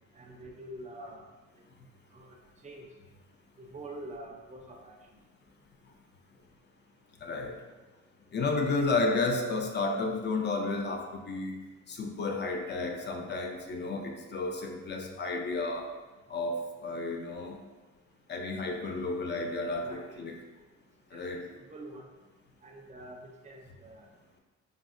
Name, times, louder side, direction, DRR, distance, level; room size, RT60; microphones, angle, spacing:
voice 1, 0.1-1.3 2.1-2.4 2.6-2.9 3.6-5.0 19.8-20.3 21.1-21.2 21.7-22.1 22.6-24.1, right 1 dB, 25° right, 1 dB, 0.4 m, -46 dB
voice 2, 7.2-7.6 8.3-11.5 11.9-15.9 16.3-17.6 18.3-20.4 21.1-21.5, left 3 dB, 35° left, 2 dB, 0.4 m, -32 dB
3.4 x 2.0 x 2.5 m, 1.2 s
cardioid pair, 90°, 30 cm